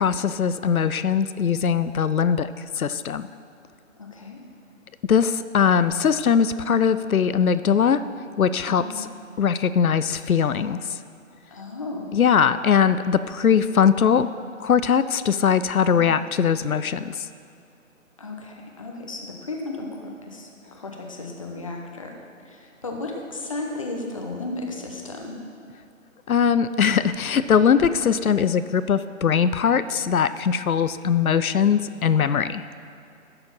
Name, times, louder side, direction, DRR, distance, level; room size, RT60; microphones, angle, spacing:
voice 1, 0.0-3.3 5.1-8.0 8.4-9.1 9.4-11.0 12.1-14.3 14.6-17.3 26.3-32.7, left 7 dB, 90° left, 13 dB, 0.5 m, -21 dB
voice 2, 4.0-4.4 8.6-9.0 11.5-12.2 18.2-20.5 20.7-22.1 22.5-25.5, left 2 dB, 25° left, 1 dB, 0.8 m, -34 dB
11.5 x 7.0 x 5.5 m, 2.4 s
figure-of-eight pair, 155°, 41 cm